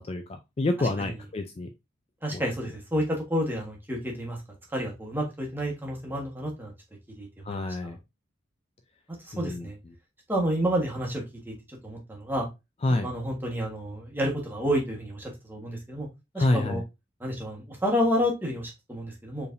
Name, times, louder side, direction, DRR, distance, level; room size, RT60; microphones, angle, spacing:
voice 1, 0.1-1.7 2.3-2.4 7.4-8.0 9.3-9.7 12.8-13.1 16.4-16.8, left 2 dB, 30° left, 6 dB, 0.4 m, -27 dB
voice 2, 0.8-1.1 2.2-4.4 4.7-6.7 7.2-7.9 9.2-9.8 10.3-12.5 13.0-16.1 16.3-16.8 17.2-19.5, equal, 10° right, -1 dB, 1.3 m, -30 dB
4.7 x 3.4 x 2.6 m, 0.23 s
head